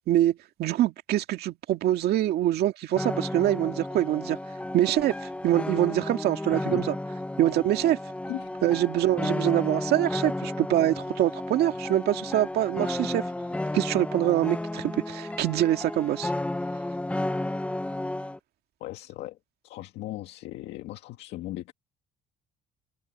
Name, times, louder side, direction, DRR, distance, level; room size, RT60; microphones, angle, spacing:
voice 1, 0.1-4.4 4.7-6.9 7.4-8.0 8.6-13.2 13.7-16.3, right 13 dB, 70° right, 2.0 m, -25 dB
sound 1, 3.0-18.4, left 1 dB, 5° left, 0.8 m, -33 dB
voice 2, 18.8-19.4 19.6-21.7, left 15 dB, 85° left, 2.0 m, -37 dB
cardioid pair, 110°, 17 cm